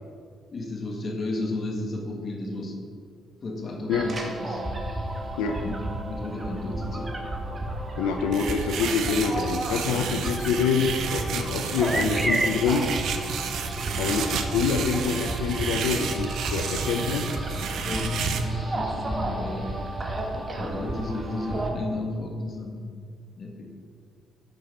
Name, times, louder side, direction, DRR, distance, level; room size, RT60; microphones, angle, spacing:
voice 1, 0.5-2.8 3.4-4.6 5.6-7.2 17.8-19.8 20.5-22.9 23.4-23.7, left 2 dB, 50° left, 2 dB, 1.7 m, -33 dB
sound 1, 3.9-21.7, right 1 dB, 35° right, 1.6 m, -33 dB
voice 2, 8.0-12.9 14.0-17.3, left 5 dB, 85° left, 6 dB, 0.5 m, -26 dB
sound 2, 8.3-18.4, right 6 dB, 70° right, 0.7 m, -31 dB
sound 3, 9.8-10.0 11.2-14.2 14.5-14.8 15.2-15.3, right 2 dB, 15° right, 0.5 m, -31 dB
10.5 x 5.7 x 4.3 m, 2.1 s
supercardioid pair, 55°, 0 cm